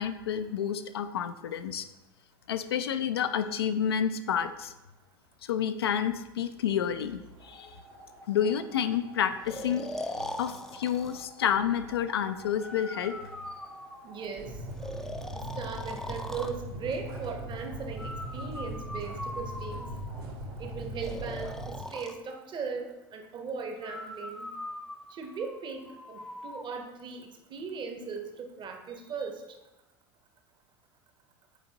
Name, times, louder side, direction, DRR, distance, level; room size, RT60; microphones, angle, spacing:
voice 1, 0.0-1.9 2.5-4.7 5.4-7.8 8.3-13.1, left 8 dB, 85° left, 10 dB, 0.4 m, -30 dB
sound 1, 7.4-21.7, right 1 dB, 80° right, 1.6 m, -42 dB
Breathing, 9.5-11.3 12.6-14.3 14.8-16.6 18.0-20.2 21.0-22.2 23.8-26.7, left 1 dB, 5° left, 0.4 m, -41 dB
voice 2, 14.0-14.6 15.3-19.9 20.6-24.5 25.1-29.4, right 5 dB, 40° right, 5 dB, 0.9 m, -38 dB
7.9 x 4.3 x 2.8 m, 1.0 s
hypercardioid pair, 75°, 13 cm